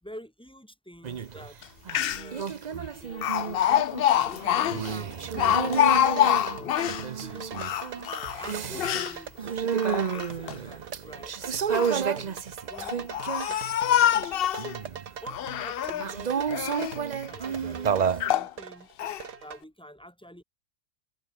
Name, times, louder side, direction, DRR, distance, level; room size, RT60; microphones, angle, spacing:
voice 1, 0.0-1.6 2.2-2.6 3.0-3.3 4.2-5.2 5.4-6.8 7.2-7.6 8.0-9.7 10.1-11.3 11.7-14.1 15.2-16.9 17.2-18.9 19.4-20.4, equal, 5° left, 4.8 m, -47 dB
sound 1, 1.0-1.5 1.9-13.8 14.1-15.1 16.0-18.3, right 7 dB, 50° right, 0.5 m, -31 dB
Speech, 1.6-1.7 1.9-2.4 3.2-7.1 7.5-9.2 9.7-10.5 11.4-12.0 12.7-14.7 15.3-16.1 16.5-17.0 17.6-17.7 18.2-18.5 19.0-19.2, left 11 dB, 80° left, 0.5 m, -26 dB
sound 2, 4.7-19.6, right 8 dB, 85° right, 2.0 m, -42 dB
open air
omnidirectional pair, 1.7 m